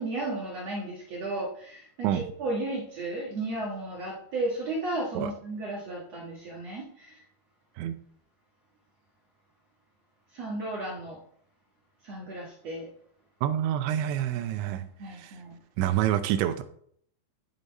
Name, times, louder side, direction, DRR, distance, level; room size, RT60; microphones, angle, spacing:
voice 1, 0.0-7.2 10.3-11.2 12.0-12.9 14.7-15.6, right 2 dB, 65° right, -3 dB, 1.7 m, -34 dB
voice 2, 13.4-15.4 15.8-16.6, right 11 dB, 85° right, 11 dB, 2.9 m, -27 dB
13.5 x 5.4 x 4.1 m, 0.64 s
omnidirectional pair, 5.3 m